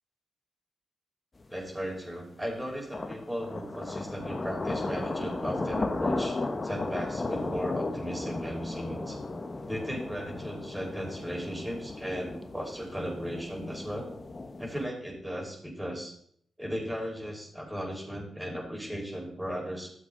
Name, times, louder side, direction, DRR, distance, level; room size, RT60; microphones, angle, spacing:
sound 1, 1.4-1.5 2.9-14.9, left 2 dB, 40° left, 1.3 m, -35 dB
voice 1, 1.5-6.4 6.6-9.2 9.6-14.1 14.6-16.1 16.6-19.9, equal, 10° right, -1 dB, 5.4 m, -36 dB
14.5 x 7.3 x 4.1 m, 0.65 s
supercardioid pair, 40°, 0 cm